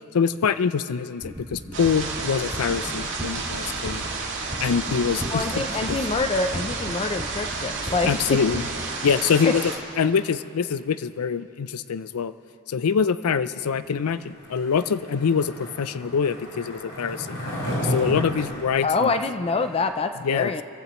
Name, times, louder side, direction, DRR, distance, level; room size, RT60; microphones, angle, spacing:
voice 1, 0.1-4.0 4.6-5.6 8.1-8.6 9.0-9.6 10.0-12.3 12.7-17.4 17.8-19.1 20.2-20.5, left 6 dB, 85° left, 14 dB, 0.5 m, -24 dB
sound 1, 1.2-8.6, equal, 15° right, 2.5 m, -35 dB
sound 2, 1.7-9.8, right 4 dB, 60° right, 2.3 m, -31 dB
voice 2, 5.3-8.4 9.5-9.6 18.8-20.6, left 3 dB, 25° left, 9 dB, 0.4 m, -26 dB
Skateboard, 14.4-19.9, equal, 70° left, 4.6 m, -33 dB
25.0 x 15.0 x 3.0 m, 2.6 s
head